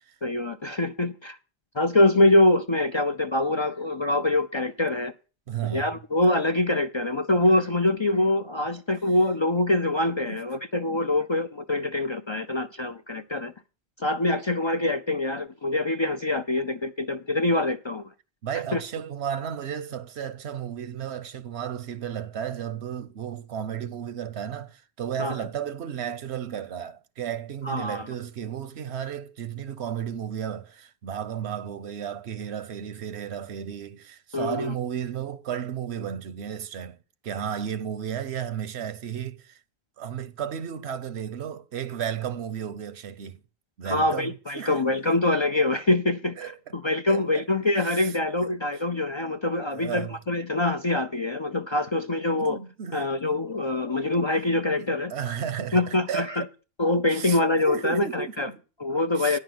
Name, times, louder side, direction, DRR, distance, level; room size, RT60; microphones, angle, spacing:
voice 1, 0.2-1.4 1.7-5.1 5.7-13.5 14.0-18.0 18.7-18.8 25.2-25.4 27.6-28.0 34.3-34.7 43.8-52.6 52.9-55.1 55.7-56.4 56.8-58.5 58.8-59.4, left 2 dB, 40° left, 0.4 m, -24 dB
voice 2, 5.5-5.9 10.2-10.4 18.4-37.0 37.2-39.6 40.0-43.4 43.8-45.1 46.4-46.7 47.1-47.4 47.8-48.2 49.7-50.2 52.3-53.1 54.8-56.5 57.1-57.4 57.7-58.6 59.2-59.4, right 9 dB, 90° right, 1.1 m, -33 dB
10.0 x 5.7 x 7.6 m
omnidirectional pair, 1.1 m